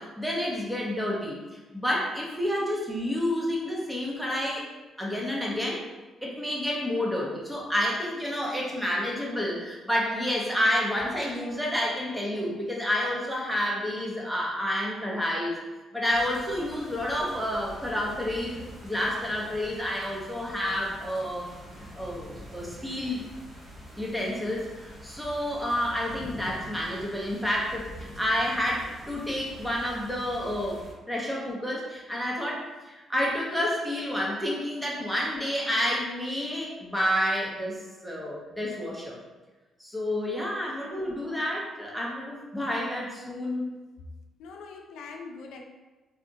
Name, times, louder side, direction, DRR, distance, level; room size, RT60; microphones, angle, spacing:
voice 1, 0.0-1.4 1.7-4.7 5.0-5.9 6.2-15.6 15.9-21.5 21.9-23.2 24.0-39.2 39.8-43.7, left 1 dB, 5° right, -3 dB, 0.9 m, -29 dB
sound 1, 16.1-30.9, equal, 35° right, 1.2 m, -45 dB
voice 2, 40.8-41.3 44.4-45.6, left 4 dB, 85° left, 2 dB, 0.4 m, -44 dB
3.5 x 2.5 x 2.6 m, 1.2 s
cardioid pair, 90°, 0 cm